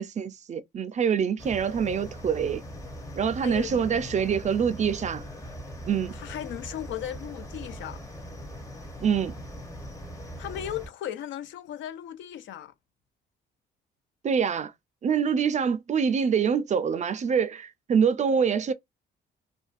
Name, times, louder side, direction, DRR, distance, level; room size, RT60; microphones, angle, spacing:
voice 1, 0.0-2.6 3.2-5.2 5.9-6.1 9.0-9.4 14.2-14.7 15.0-18.7, right 7 dB, 35° right, 0.4 m, -25 dB
sound 1, 1.4-10.9, equal, 15° left, 0.6 m, -40 dB
voice 2, 3.4-4.3 6.1-8.0 10.4-12.7, left 11 dB, 70° left, 0.4 m, -37 dB
2.5 x 2.1 x 2.4 m
cardioid pair, 90°, 20 cm